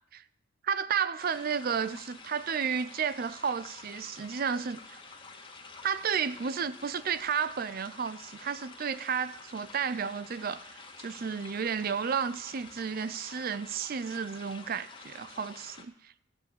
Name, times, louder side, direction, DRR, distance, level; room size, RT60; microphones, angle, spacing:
voice 1, 0.6-5.0 5.8-16.1, right 6 dB, 50° right, 0.5 m, -32 dB
sound 1, 1.2-15.8, left 4 dB, 25° left, 1.9 m, -49 dB
13.5 x 7.1 x 10.0 m
head